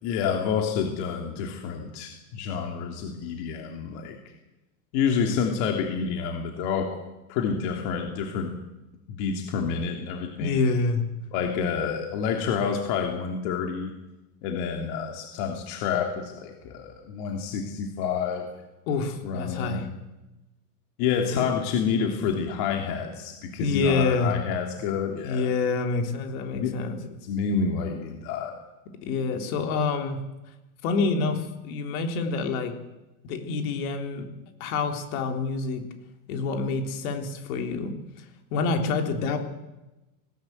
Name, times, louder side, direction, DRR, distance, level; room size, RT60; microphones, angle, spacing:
voice 1, 0.0-4.2 4.9-7.0 7.3-8.5 9.1-10.6 11.3-13.9 14.4-18.5 19.2-19.8 21.0-25.5 26.5-26.8 27.2-28.5, left 6 dB, 55° left, 3 dB, 3.0 m, -28 dB
voice 2, 10.4-11.0 18.9-19.9 21.3-21.5 23.6-24.3 25.2-27.0 29.0-30.2 30.8-32.7 33.2-34.3 34.6-35.8 36.3-38.3 38.5-39.4, left 4 dB, 70° left, 5 dB, 3.8 m, -27 dB
19.5 x 18.5 x 8.1 m, 1.0 s
supercardioid pair, 165°, 44 cm